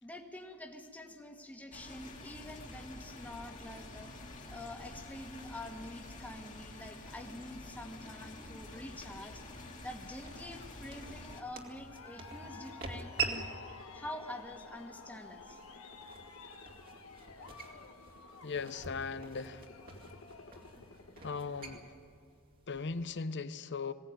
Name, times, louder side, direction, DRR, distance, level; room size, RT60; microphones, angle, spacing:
voice 1, 0.0-4.1 4.5-9.4 9.8-13.5 13.9-15.6, left 1 dB, 5° left, 3 dB, 1.7 m, -46 dB
sound 1, 1.7-11.4, left 2 dB, 35° left, 2.4 m, -48 dB
sound 2, 7.1-23.2, right 4 dB, 45° right, 2.4 m, -46 dB
Aircraft, 10.3-21.9, left 4 dB, 75° left, 1.9 m, -52 dB
voice 2, 18.4-19.7 21.2-21.8 22.7-23.9, left 4 dB, 55° left, 13 dB, 0.8 m, -38 dB
21.0 x 17.0 x 9.3 m, 2.4 s
head